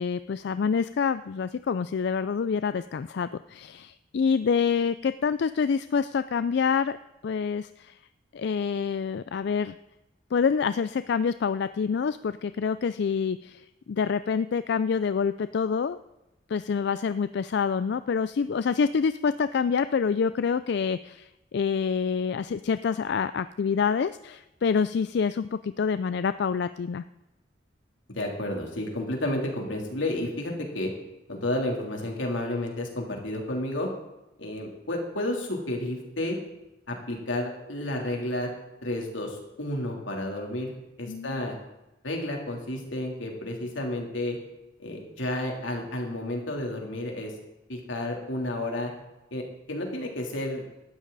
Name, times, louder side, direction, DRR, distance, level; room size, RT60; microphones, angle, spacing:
voice 1, 0.0-7.0 7.2-8.0 8.3-9.8 10.3-13.6 13.9-16.0 16.5-27.0 41.1-41.4, left 6 dB, 60° left, 13 dB, 0.4 m, -27 dB
voice 2, 28.1-30.9 31.3-33.9 34.4-36.4 36.9-38.5 38.8-40.7 41.0-41.6 42.0-44.4 44.8-47.3 47.7-48.9 49.3-50.6, left 1 dB, 85° left, 1 dB, 3.3 m, -31 dB
17.5 x 12.5 x 4.1 m, 0.97 s
head